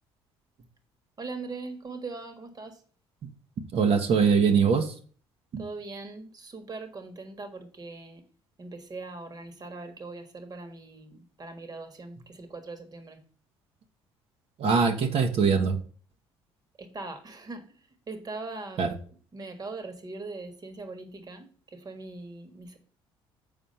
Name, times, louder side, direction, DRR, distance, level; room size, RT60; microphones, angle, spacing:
voice 1, 1.2-2.8 5.6-8.2 8.6-13.2 16.8-19.0 19.3-22.8, right 3 dB, 35° right, 8 dB, 1.6 m, -41 dB
voice 2, 3.7-4.9 5.5-5.6 14.6-15.8 18.8-18.9, right 5 dB, 60° right, 7 dB, 1.3 m, -22 dB
7.2 x 4.5 x 5.7 m, 0.43 s
supercardioid pair, 70°, 11 cm